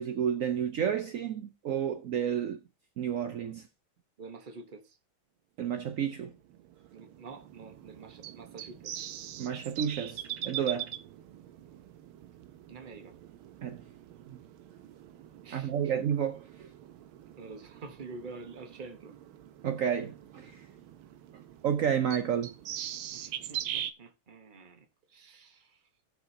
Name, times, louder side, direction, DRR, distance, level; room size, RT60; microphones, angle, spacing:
voice 1, 0.0-2.6 3.0-3.6 5.6-6.3 9.4-10.9 13.6-13.8 14.3-14.4 15.5-16.7 19.6-20.7 21.6-22.5, right 8 dB, 70° right, 0.7 m, -31 dB
voice 2, 4.2-5.0 6.9-9.1 12.7-13.2 15.4-15.7 17.4-19.1 23.1-25.8, right 3 dB, 35° right, 0.9 m, -47 dB
sound 1, 6.1-23.9, right 11 dB, 85° right, 1.6 m, -43 dB
16.0 x 6.0 x 2.7 m
omnidirectional pair, 2.3 m